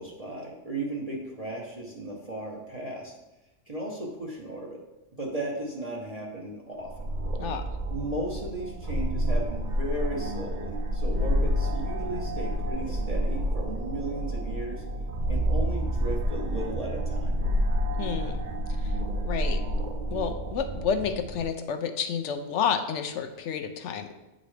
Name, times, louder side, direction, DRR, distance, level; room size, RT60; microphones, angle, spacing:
voice 1, 0.0-3.1 3.7-4.8 5.2-7.1 7.9-14.8 15.2-17.3, right 1 dB, 35° right, -3 dB, 0.9 m, -35 dB
sound 1, 6.8-21.4, equal, 55° right, 0.5 m, -29 dB
voice 2, 18.0-18.4 18.8-18.9 19.2-19.6 20.1-24.2, left 7 dB, 70° left, 7 dB, 0.9 m, -30 dB
9.2 x 3.9 x 3.2 m, 0.99 s
omnidirectional pair, 1.3 m